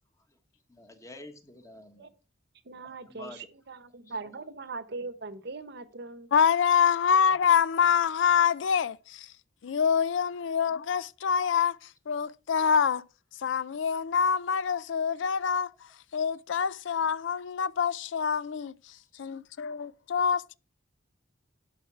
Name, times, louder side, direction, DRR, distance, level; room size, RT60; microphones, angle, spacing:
voice 1, 0.7-2.1 2.8-3.5 4.1-4.3, left 2 dB, 15° left, 1.3 m, -48 dB
voice 2, 2.6-6.3, right 3 dB, 60° right, 0.9 m, -40 dB
voice 3, 6.3-9.3 9.6-13.0 13.4-20.6, left 7 dB, 70° left, 0.4 m, -26 dB
11.5 x 5.7 x 4.6 m
head